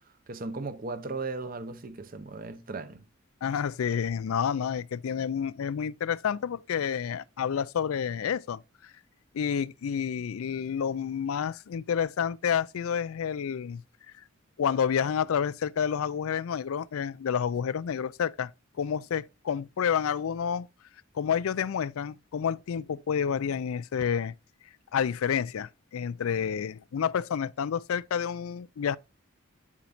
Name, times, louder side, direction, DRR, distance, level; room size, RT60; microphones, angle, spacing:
voice 1, 0.3-3.1, right 3 dB, 40° right, 0.7 m, -36 dB
voice 2, 3.4-8.6 9.3-13.8 14.6-18.5 18.8-20.7 21.2-24.3 24.9-29.0, left 7 dB, 80° left, 0.4 m, -29 dB
8.3 x 7.3 x 2.5 m
head